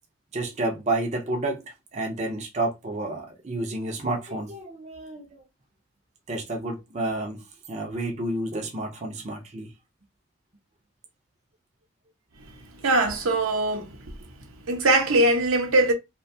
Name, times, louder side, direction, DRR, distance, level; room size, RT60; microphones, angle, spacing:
voice 1, 0.3-5.4 6.3-9.7, right 2 dB, 35° right, 0.4 m, -30 dB
voice 2, 12.4-14.1 14.7-15.9, right 2 dB, 90° right, 0.7 m, -22 dB
2.6 x 2.2 x 2.6 m
head